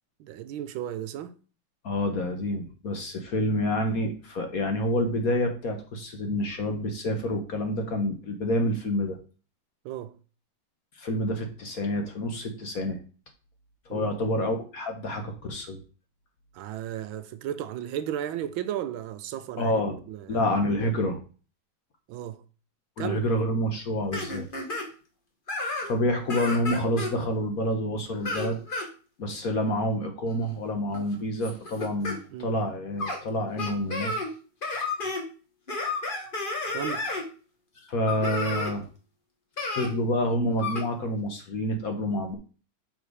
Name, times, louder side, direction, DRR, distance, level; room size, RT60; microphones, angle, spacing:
voice 1, 0.2-1.4 9.8-10.2 13.9-14.1 16.5-19.7 20.1-20.5 22.1-22.4 23.0-23.2 32.3-32.6 36.7-37.1, right 11 dB, 80° right, 1.4 m, -34 dB
voice 2, 1.8-9.2 11.0-13.0 13.9-15.8 19.6-20.0 20.3-21.2 23.0-24.5 25.8-28.6 29.2-34.1 37.9-38.9 39.7-42.4, left 1 dB, 50° left, 1.3 m, -28 dB
sound 1, 24.1-24.8 25.5-26.0 26.3-27.1 28.1-28.9 30.3-30.5 30.9-32.2 33.0-33.2 33.6-34.3 34.6-35.2 35.7-37.2 38.1-38.7 39.6-39.9 40.6-40.8, left 2 dB, 30° left, 1.3 m, -31 dB
6.2 x 5.0 x 4.9 m
omnidirectional pair, 2.2 m